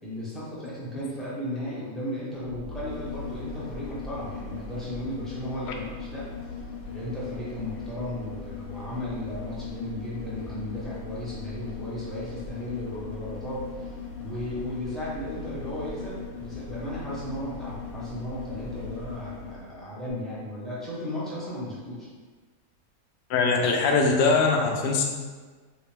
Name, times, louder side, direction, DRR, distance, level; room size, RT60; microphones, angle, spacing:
voice 1, 0.0-6.6 6.8-22.1, equal, ahead, -9 dB, 0.6 m, -35 dB
sound 1, 2.4-19.7 20.1-20.2, left 5 dB, 90° left, 1.2 m, -38 dB
voice 2, 23.3-25.0, left 4 dB, 70° left, 2 dB, 0.6 m, -22 dB
3.1 x 2.9 x 3.2 m, 1.4 s
omnidirectional pair, 1.6 m